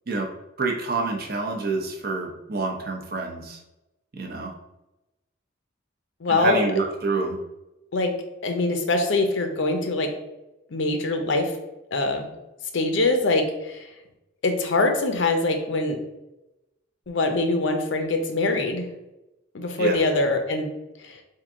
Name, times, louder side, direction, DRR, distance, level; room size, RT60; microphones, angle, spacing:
voice 1, 0.6-3.6 4.1-4.5 6.3-7.4 19.8-20.0, right 3 dB, 50° right, 1 dB, 0.6 m, -27 dB
voice 2, 6.2-6.6 7.9-8.1 8.4-10.1 10.7-11.5 11.9-12.3 12.7-13.8 14.4-16.0 17.1-18.9 19.5-20.7 21.0-21.2, left 2 dB, 70° left, 5 dB, 0.6 m, -23 dB
3.7 x 2.7 x 3.7 m, 0.96 s
head